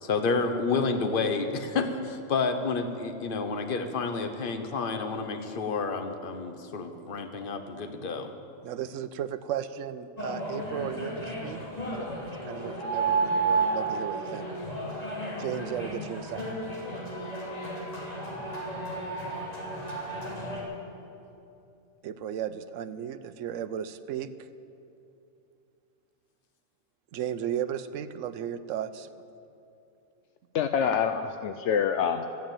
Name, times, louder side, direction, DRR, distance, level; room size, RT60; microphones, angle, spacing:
voice 1, 0.0-8.3, left 4 dB, 45° left, 7 dB, 1.1 m, -30 dB
voice 2, 8.6-11.6 11.9-12.1 12.4-14.5 15.4-16.4 22.0-24.5 27.1-29.1, right 9 dB, 85° right, 11 dB, 1.0 m, -35 dB
sound 1, 10.2-20.6, right 3 dB, 30° left, 3.1 m, -32 dB
voice 3, 30.5-32.3, left 7 dB, 75° left, 8 dB, 0.9 m, -26 dB
14.0 x 9.5 x 9.0 m, 2.8 s
omnidirectional pair, 1.3 m